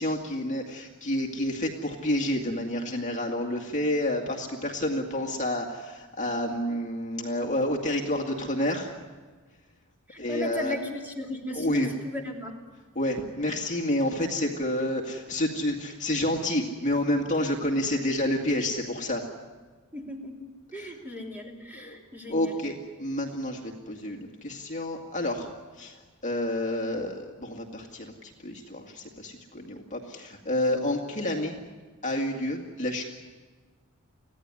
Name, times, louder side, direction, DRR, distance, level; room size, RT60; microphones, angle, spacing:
voice 1, 0.0-8.9 10.2-10.8 11.5-11.9 13.0-19.2 20.8-20.9 21.7-22.0 22.3-31.6 32.0-33.0, left 1 dB, 35° left, 1 dB, 2.1 m, -29 dB
voice 2, 10.1-12.6 19.9-22.6, left 1 dB, 10° right, 0 dB, 3.2 m, -37 dB
24.5 x 16.0 x 9.8 m, 1.4 s
head